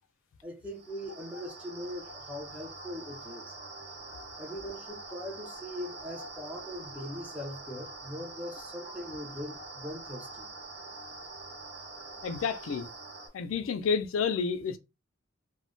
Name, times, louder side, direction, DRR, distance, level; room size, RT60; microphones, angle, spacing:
voice 1, 0.4-3.5 4.4-10.5, left 1 dB, 5° right, 0.6 m, -41 dB
sound 1, 0.7-13.3, right 3 dB, 50° right, 1.0 m, -45 dB
voice 2, 12.2-12.9 13.3-14.8, left 5 dB, 70° left, 0.4 m, -30 dB
2.1 x 2.1 x 3.7 m
head